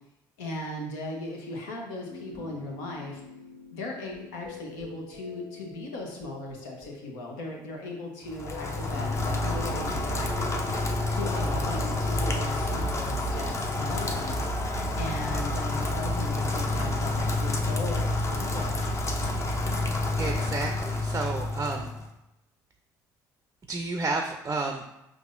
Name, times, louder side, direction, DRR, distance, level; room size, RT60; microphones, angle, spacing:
voice 1, 0.4-3.2 3.7-10.6 11.1-14.4 15.0-18.9, left 2 dB, 85° left, 0 dB, 0.8 m, -37 dB
sound 1, 2.1-15.2 19.6-19.8, left 2 dB, 55° left, 1.5 m, -46 dB
Rain, 8.3-22.1, left 2 dB, 30° left, 0.6 m, -29 dB
voice 2, 20.2-21.9 23.7-24.8, right 3 dB, 25° right, 3 dB, 0.4 m, -31 dB
4.7 x 2.6 x 2.5 m, 0.89 s
hypercardioid pair, 65°, 10 cm